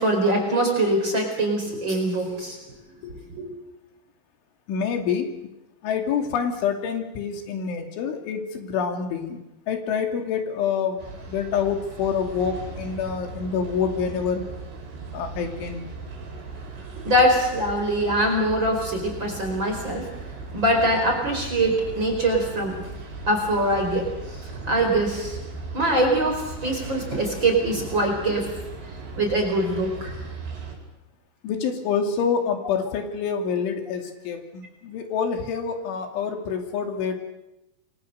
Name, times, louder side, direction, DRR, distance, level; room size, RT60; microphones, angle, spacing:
voice 1, 0.0-2.6 3.1-3.5 17.0-20.1 20.5-22.8 23.3-25.4 25.7-28.5 29.1-30.1, right 1 dB, 25° right, 2 dB, 4.9 m, -23 dB
voice 2, 4.7-5.3 5.8-9.4 9.7-11.0 11.3-14.4 15.1-15.8 31.4-37.2, left 6 dB, 80° left, 4 dB, 5.1 m, -27 dB
sound 1, 11.0-30.8, right 3 dB, 65° right, 6.9 m, -38 dB
28.5 x 23.5 x 6.7 m, 0.95 s
omnidirectional pair, 5.5 m